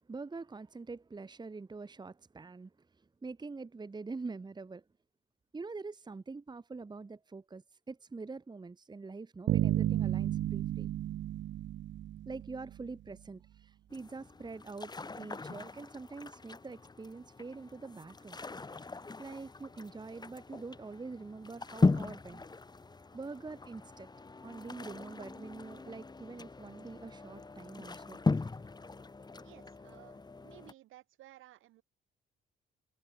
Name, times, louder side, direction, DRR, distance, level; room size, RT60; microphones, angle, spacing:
voice 1, 0.0-2.9 3.2-4.8 5.5-10.9 12.2-18.4 19.2-22.5 23.1-24.1 24.4-28.2, right 4 dB, 20° right, 1.3 m, -45 dB
sound 1, 9.5-12.9, right 12 dB, 65° right, 0.7 m, -32 dB
sound 2, 13.9-30.7, left 3 dB, 20° left, 1.6 m, -38 dB
voice 2, 29.4-31.8, right 15 dB, 85° right, 7.9 m, -57 dB
cardioid pair, 90°, 20 cm